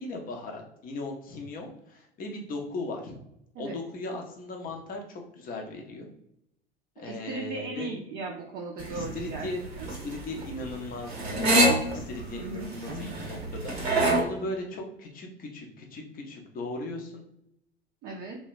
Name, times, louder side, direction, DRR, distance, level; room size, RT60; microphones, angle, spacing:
voice 1, 0.0-3.1 3.6-6.1 7.0-7.9 8.9-11.5 11.9-17.2, left 2 dB, 30° left, 2 dB, 0.6 m, -38 dB
voice 2, 7.0-9.5 9.8-9.9 12.4-12.7 18.0-18.4, right 3 dB, 35° right, -1 dB, 0.4 m, -37 dB
sound 1, 8.8-14.2, right 1 dB, 80° right, 0.6 m, -26 dB
2.8 x 2.1 x 2.4 m, 0.78 s
figure-of-eight pair, 70°, 31 cm